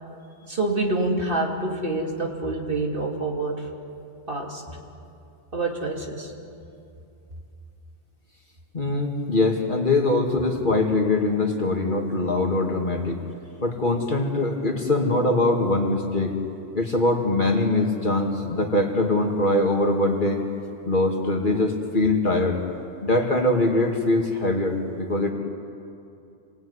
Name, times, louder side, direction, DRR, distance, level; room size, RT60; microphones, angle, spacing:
voice 1, 0.5-3.6 4.3-4.6 5.5-6.3, right 2 dB, 50° right, 0 dB, 2.9 m, -26 dB
voice 2, 8.7-13.2 13.6-16.3 16.7-20.4 20.9-22.6 23.0-25.3, left 2 dB, 45° left, 2 dB, 2.5 m, -22 dB
27.5 x 20.0 x 9.7 m, 2.6 s
omnidirectional pair, 1.2 m